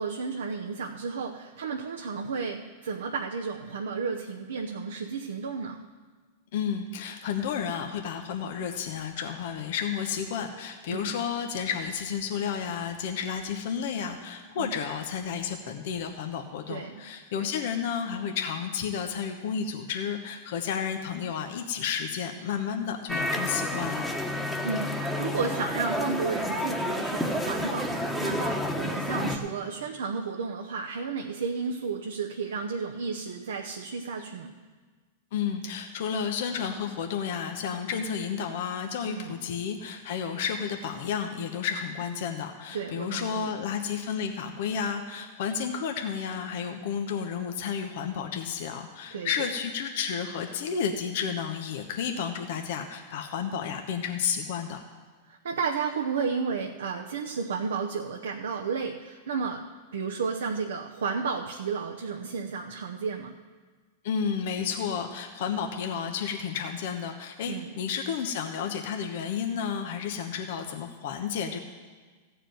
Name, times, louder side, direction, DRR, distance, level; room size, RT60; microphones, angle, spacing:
voice 1, 0.0-5.8 10.9-11.1 14.6-14.8 16.7-17.1 17.4-17.5 24.6-34.6 39.1-39.4 42.7-43.5 49.1-49.5 55.3-63.3 67.5-67.7, right 5 dB, 85° right, 1 dB, 0.8 m, -32 dB
voice 2, 6.5-24.1 35.3-54.8 64.0-71.6, left 7 dB, 65° left, 4 dB, 1.0 m, -31 dB
sound 1, 23.1-29.4, left 1 dB, ahead, 1.2 m, -30 dB
14.5 x 4.9 x 9.1 m, 1.5 s
hypercardioid pair, 115°, 0 cm